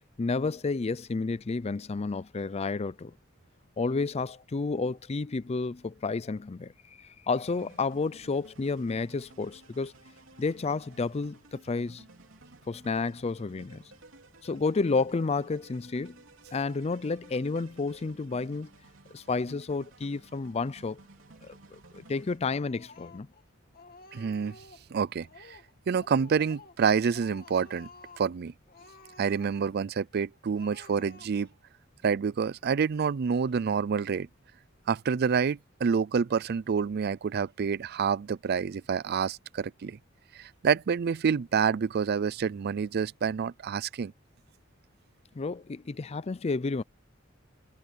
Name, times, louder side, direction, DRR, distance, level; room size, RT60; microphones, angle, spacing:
voice 1, 0.2-3.1 3.8-6.7 7.0-9.9 10.4-12.0 12.7-13.8 14.4-16.2 16.5-18.7 19.1-21.0 21.4-23.3 45.3-46.8, left 4 dB, 30° left, 0.4 m, -31 dB
sound 1, 7.3-22.4, right 2 dB, 85° right, 3.0 m, -55 dB
Speech, 22.5-23.4 23.7-24.9 25.2-25.7 26.0-26.8 27.1-28.3 28.7-29.8 30.1-30.2 30.5-31.6, left 3 dB, 50° left, 2.5 m, -52 dB
voice 2, 24.1-24.6 24.9-25.6 25.9-27.9 28.2-28.5 29.2-31.5 32.0-34.3 34.9-40.0 40.3-44.1, right 6 dB, 55° right, 0.4 m, -28 dB
head